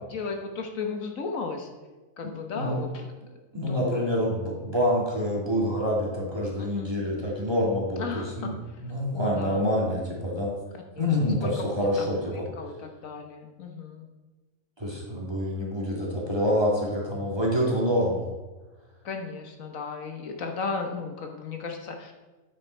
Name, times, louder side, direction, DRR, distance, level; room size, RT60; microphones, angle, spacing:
voice 1, 0.1-1.7 2.2-3.1 3.7-4.0 6.6-7.1 8.0-8.5 9.1-9.6 11.0-14.1 19.0-22.1, left 4 dB, 75° left, 4 dB, 1.5 m, -35 dB
voice 2, 2.2-2.8 3.5-8.5 8.8-10.5 11.0-12.4 14.8-18.3, equal, 20° right, -3 dB, 2.2 m, -27 dB
9.2 x 8.2 x 4.4 m, 1.2 s
omnidirectional pair, 1.4 m